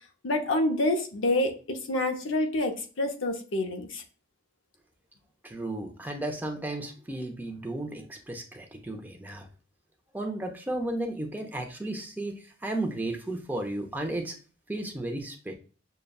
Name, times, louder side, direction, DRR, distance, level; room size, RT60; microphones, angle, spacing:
voice 1, 0.2-4.0, left 1 dB, 75° left, 4 dB, 0.7 m, -27 dB
voice 2, 5.4-9.5 10.1-14.4 14.7-15.5, right 1 dB, 10° right, 3 dB, 0.5 m, -34 dB
6.4 x 2.2 x 2.3 m, 0.37 s
head